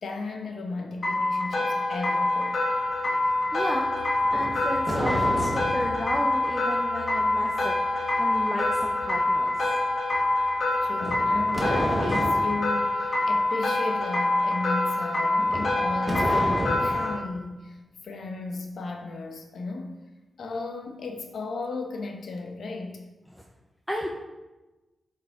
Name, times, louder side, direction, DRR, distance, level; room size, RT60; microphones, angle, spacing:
voice 1, 0.0-2.6 10.8-20.0 20.4-23.0, left 3 dB, 75° left, 3 dB, 0.9 m, -35 dB
sound 1, 1.0-17.2, left 2 dB, 55° left, 2.0 m, -26 dB
sound 2, 2.7-12.5 12.7-12.8 13.1-13.6, equal, 85° right, 1.8 m, -48 dB
voice 2, 3.5-3.9 4.3-9.6 23.3-23.4 23.9-24.1, equal, 5° left, -1 dB, 0.7 m, -33 dB
sound 3, 4.2-6.0 11.0-12.6 15.4-17.2, equal, 10° right, 1.3 m, -30 dB
7.5 x 4.7 x 3.7 m, 1.1 s
cardioid pair, 85°, 0 cm